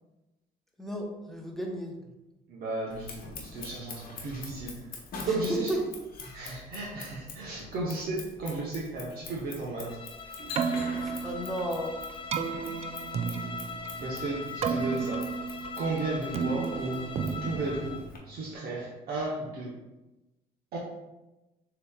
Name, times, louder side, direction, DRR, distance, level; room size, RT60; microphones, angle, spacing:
voice 1, 0.8-2.0 5.2-5.8 10.7-11.9, equal, ahead, 0 dB, 0.8 m, -34 dB
voice 2, 2.5-5.7 6.3-10.0 14.0-15.3 15.8-19.8 20.7-20.8, right 2 dB, 65° right, -4 dB, 0.9 m, -34 dB
Scissors, 2.9-18.2, left 4 dB, 60° left, 1.0 m, -46 dB
Bowed string instrument, 9.7-18.1, left 5 dB, 30° left, 0.4 m, -41 dB
Keyboard (musical), 10.4-18.5, right 6 dB, 40° right, 0.3 m, -33 dB
6.7 x 2.9 x 2.3 m, 1.0 s
cardioid pair, 110°, 17 cm